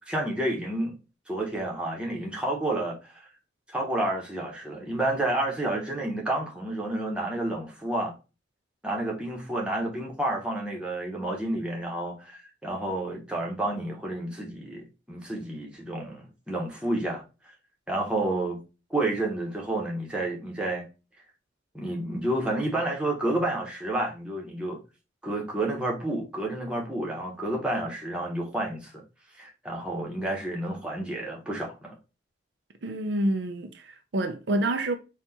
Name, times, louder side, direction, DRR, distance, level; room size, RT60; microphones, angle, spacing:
voice 1, 0.1-1.0 1.3-3.3 3.7-8.1 8.8-17.2 17.9-18.6 18.9-20.8 21.7-24.8 25.2-29.0 29.4-32.0, right 1 dB, 5° right, 1.0 m, -30 dB
voice 2, 32.8-34.9, right 1 dB, 70° right, 0.5 m, -28 dB
4.4 x 2.4 x 4.0 m
head